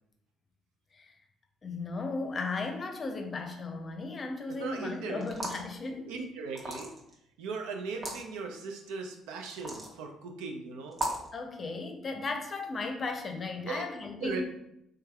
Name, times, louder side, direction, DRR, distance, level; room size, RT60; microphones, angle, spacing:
voice 1, 1.6-6.1 11.3-14.4, left 3 dB, 40° left, 5 dB, 0.5 m, -36 dB
voice 2, 4.5-5.2 6.0-6.9 7.4-11.0 13.6-13.8 14.2-14.4, right 4 dB, 85° right, 3 dB, 0.4 m, -38 dB
sound 1, 5.2-5.7 6.5-7.1 7.9-8.2 9.5-9.9 10.9-11.3, right 1 dB, 35° right, 0.8 m, -35 dB
3.3 x 3.2 x 2.3 m, 0.79 s
supercardioid pair, 65°, 0 cm